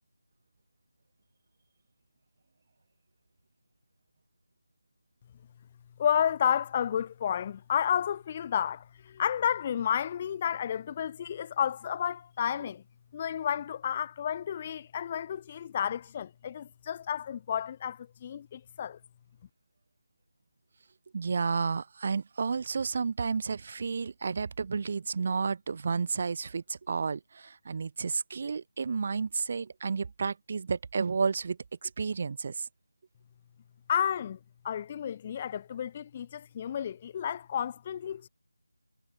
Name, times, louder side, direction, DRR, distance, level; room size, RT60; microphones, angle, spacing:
voice 1, 6.0-12.8 13.1-19.0 33.9-34.4 34.6-38.3, left 9 dB, 25° left, 1.8 m, -31 dB
voice 2, 21.1-32.7, right 5 dB, 40° right, 5.9 m, -31 dB
figure-of-eight pair, 165°, 0 cm